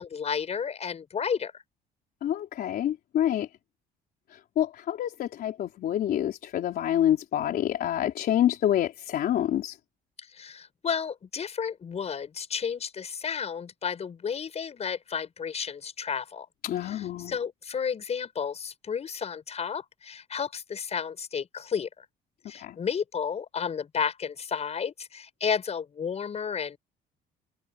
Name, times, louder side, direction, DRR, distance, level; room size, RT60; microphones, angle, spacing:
voice 1, 0.0-1.6 10.2-16.5 16.8-22.1 22.5-26.8, left 7 dB, 40° left, 7.1 m, -32 dB
voice 2, 2.2-3.5 4.3-9.8 16.6-17.4 22.5-22.8, left 11 dB, 65° left, 3.8 m, -27 dB
cardioid pair, 110°, 17 cm